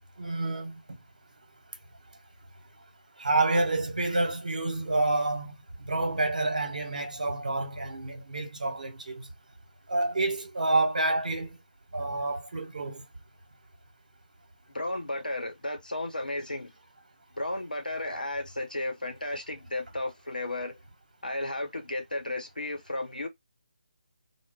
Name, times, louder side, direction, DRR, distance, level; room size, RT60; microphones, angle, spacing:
voice 1, 0.2-0.8 3.2-5.5 5.9-9.3 9.9-11.6 11.9-13.0, right 2 dB, 65° right, 1.0 m, -28 dB
voice 2, 14.7-16.7 17.3-20.8 21.2-23.3, left 1 dB, 90° left, 1.0 m, -34 dB
2.2 x 2.1 x 3.6 m
figure-of-eight pair, 150°, 5 cm